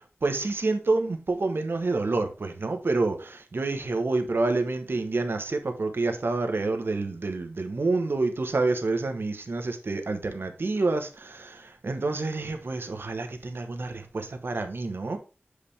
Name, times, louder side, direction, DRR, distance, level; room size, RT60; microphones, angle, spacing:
voice 1, 0.2-15.2, right 3 dB, 65° right, 1.0 m, -28 dB
7.1 x 4.9 x 3.3 m
wide cardioid pair, 75°, 4 cm